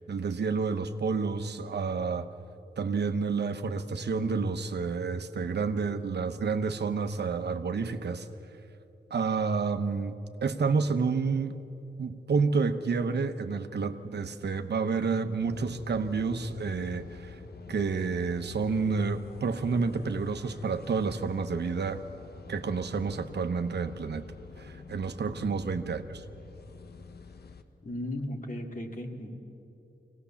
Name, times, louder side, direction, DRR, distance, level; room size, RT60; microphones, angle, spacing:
voice 1, 0.1-2.3 2.8-8.3 9.1-11.6 12.0-17.4 17.7-22.0 22.5-24.2 24.6-26.2, right 4 dB, 80° right, 8 dB, 1.0 m, -29 dB
sound 1, 15.4-27.6, left 5 dB, 70° left, 1.1 m, -47 dB
voice 2, 27.8-29.3, left 1 dB, 50° left, 2 dB, 2.3 m, -36 dB
23.5 x 18.0 x 7.1 m, 2.8 s
wide cardioid pair, 90°, 17 cm